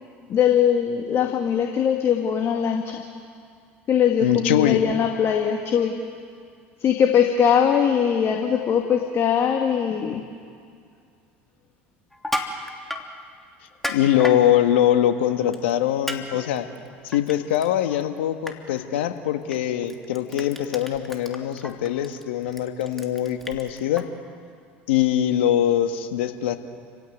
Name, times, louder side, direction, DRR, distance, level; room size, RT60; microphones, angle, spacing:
voice 1, 0.3-3.0 3.9-5.9 6.8-10.2, left 8 dB, 45° left, 3 dB, 2.3 m, -21 dB
voice 2, 4.2-4.8 13.9-16.7 17.0-24.1 24.9-26.6, left 11 dB, 75° left, 7 dB, 1.7 m, -22 dB
Crushing, 12.1-13.1 13.7-14.4 15.5-15.7 16.1-16.2 16.6-17.7 18.0-18.2 18.5-18.6 19.5-19.6 19.9-24.0, left 1 dB, 5° left, 3.0 m, -32 dB
29.5 x 16.5 x 9.4 m, 2.3 s
hypercardioid pair, 75°, 6 cm